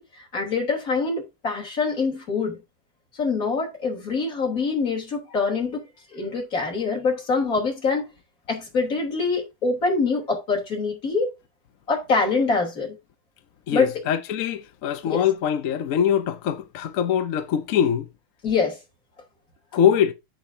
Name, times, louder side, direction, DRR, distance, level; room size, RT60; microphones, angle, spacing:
voice 1, 0.0-2.6 3.1-5.8 6.1-8.1 8.5-11.3 11.9-13.0 13.7-13.9 15.1-15.2 18.4-18.8, left 4 dB, 45° left, 3.8 m, -24 dB
voice 2, 13.7-18.1 19.7-20.1, left 9 dB, 65° left, 0.8 m, -23 dB
14.5 x 5.0 x 2.7 m
omnidirectional pair, 2.1 m